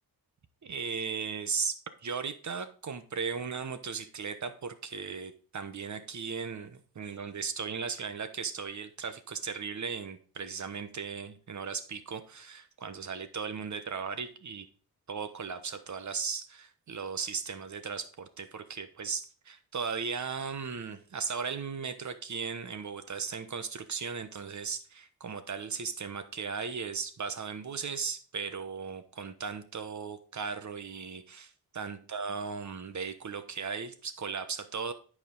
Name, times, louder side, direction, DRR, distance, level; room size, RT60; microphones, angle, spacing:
voice 1, 0.6-1.7 2.0-14.7 15.1-34.9, right 5 dB, 50° right, 10 dB, 1.1 m, -37 dB
11.0 x 5.0 x 3.9 m, 0.39 s
wide cardioid pair, 105°, 38 cm